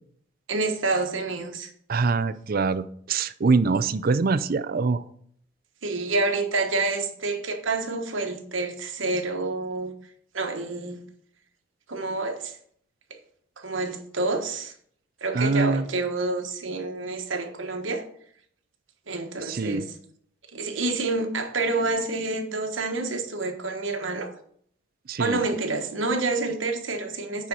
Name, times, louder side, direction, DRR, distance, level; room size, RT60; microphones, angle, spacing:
voice 1, 0.5-1.7 5.8-9.9 10.3-11.0 11.9-12.5 13.6-14.7 15.2-18.0 19.1-19.9 20.5-24.3 25.2-27.5, right 3 dB, 80° right, 1.3 m, -28 dB
voice 2, 1.9-5.0 15.3-15.9 19.4-19.9 25.1-25.4, right 4 dB, 50° right, 0.5 m, -24 dB
9.4 x 4.3 x 6.2 m
head